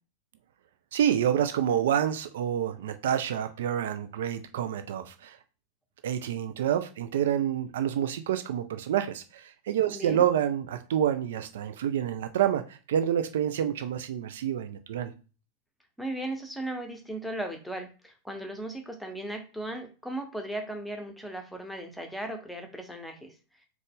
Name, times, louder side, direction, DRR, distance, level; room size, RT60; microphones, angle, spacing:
voice 1, 0.9-5.4 6.0-15.1, right 10 dB, 60° right, 0.3 m, -28 dB
voice 2, 9.9-10.3 16.0-23.3, right 1 dB, ahead, 0.9 m, -37 dB
3.8 x 3.0 x 3.7 m
figure-of-eight pair, 90°, 0 cm